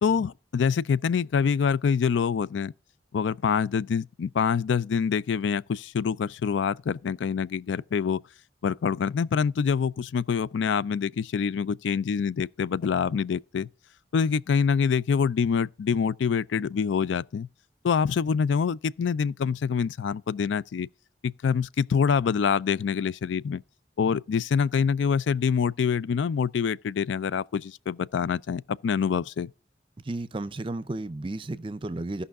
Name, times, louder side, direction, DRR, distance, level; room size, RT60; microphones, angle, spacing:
voice 1, 0.0-2.7 3.1-8.2 8.6-13.7 14.1-17.5 17.8-20.9 21.2-23.6 24.0-29.5, left 6 dB, 80° left, 0.4 m, -25 dB
voice 2, 30.0-32.2, right 2 dB, 30° right, 0.5 m, -33 dB
15.5 x 5.6 x 3.6 m
head